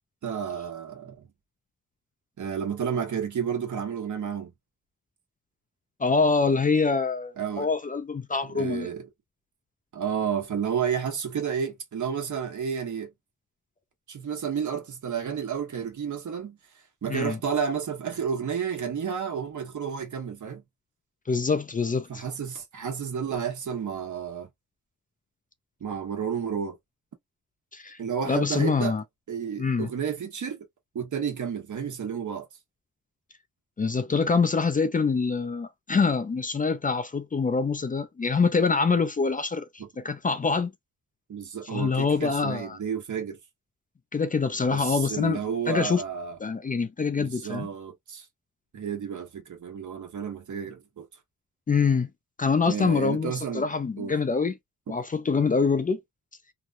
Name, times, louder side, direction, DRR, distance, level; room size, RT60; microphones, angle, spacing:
voice 1, 0.2-1.3 2.4-4.5 7.4-7.7 8.5-9.0 9.9-13.1 14.1-16.6 17.0-20.6 22.1-24.5 25.8-26.8 28.0-29.0 29.3-30.7 30.9-32.5 39.8-39.9 41.3-43.4 44.7-46.4 47.2-48.2 48.7-51.1 52.7-53.7 54.0-54.1, right 7 dB, 70° right, 1.2 m, -31 dB
voice 2, 6.0-8.9 17.1-17.4 21.3-22.2 27.7-28.0 28.3-29.0 29.6-29.9 33.8-40.7 41.7-42.8 44.1-45.4 45.7-46.0 46.4-47.7 51.7-52.1 52.4-54.6 54.9-56.0, left 4 dB, 25° left, 0.4 m, -25 dB
3.0 x 2.3 x 2.5 m
wide cardioid pair, 105°, 31 cm